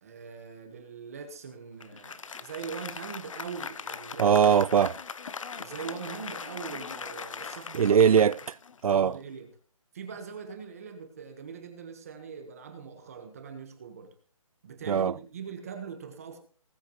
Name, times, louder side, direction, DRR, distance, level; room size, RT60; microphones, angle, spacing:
voice 1, 0.0-4.3 5.5-8.0 8.9-9.5 9.9-14.1 14.6-16.4, right 6 dB, 25° right, 1.4 m, -42 dB
Applause, 1.8-9.4, left 6 dB, 65° left, 0.7 m, -40 dB
voice 2, 4.2-5.0 7.8-8.6 8.8-9.2 14.9-15.2, right 7 dB, 90° right, 0.4 m, -21 dB
19.5 x 8.3 x 3.1 m
hypercardioid pair, 175°, 18 cm